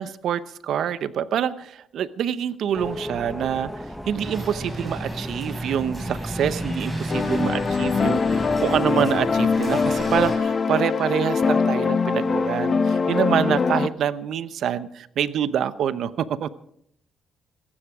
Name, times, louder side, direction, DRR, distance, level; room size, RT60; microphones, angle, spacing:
voice 1, 0.0-3.7 4.1-16.5, right 9 dB, 70° right, 16 dB, 0.8 m, -26 dB
sound 1, 2.7-8.8, equal, ahead, 0.9 m, -34 dB
sound 2, 4.2-10.4, right 2 dB, 20° right, 7.3 m, -35 dB
sound 3, 7.1-13.9, left 5 dB, 40° left, 0.8 m, -22 dB
16.0 x 15.0 x 4.9 m, 0.71 s
cardioid pair, 90°, 0 cm